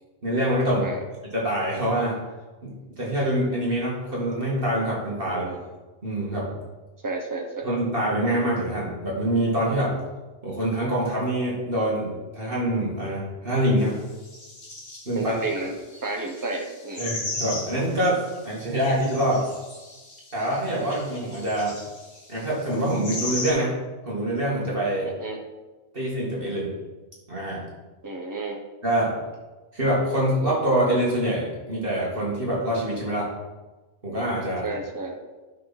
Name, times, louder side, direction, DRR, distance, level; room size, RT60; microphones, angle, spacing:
voice 1, 0.2-0.9 1.3-2.2 2.6-5.6 6.0-6.5 7.6-9.9 10.4-14.0 15.1-15.3 17.0-19.4 20.3-21.7 22.3-23.7 24.0-25.1 25.9-26.7 27.3-27.7 28.8-29.1 29.7-33.3 34.0-34.7, right 1 dB, 45° right, -5 dB, 2.4 m, -25 dB
voice 2, 5.3-5.6 7.0-7.7 15.1-17.1 25.0-25.4 28.0-28.6 34.6-35.2, right 3 dB, 15° right, 2 dB, 1.1 m, -32 dB
sound 1, 13.8-13.9 14.1-23.5, left 2 dB, 50° left, 2.1 m, -37 dB
12.0 x 6.0 x 4.3 m, 1.2 s
omnidirectional pair, 1.3 m